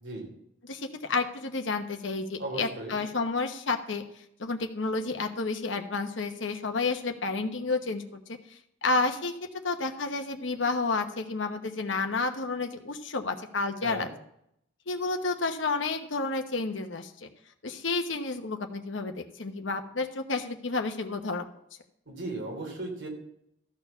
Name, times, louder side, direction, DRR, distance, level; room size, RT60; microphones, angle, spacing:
voice 1, 0.6-4.0 4.4-8.4 8.8-9.4 9.6-14.1 14.9-17.3 17.6-21.4, left 3 dB, 80° left, 6 dB, 1.1 m, -30 dB
voice 2, 2.4-3.0 13.8-14.1 22.1-23.1, right 2 dB, 70° right, 0 dB, 3.4 m, -36 dB
13.5 x 4.6 x 7.0 m, 0.73 s
head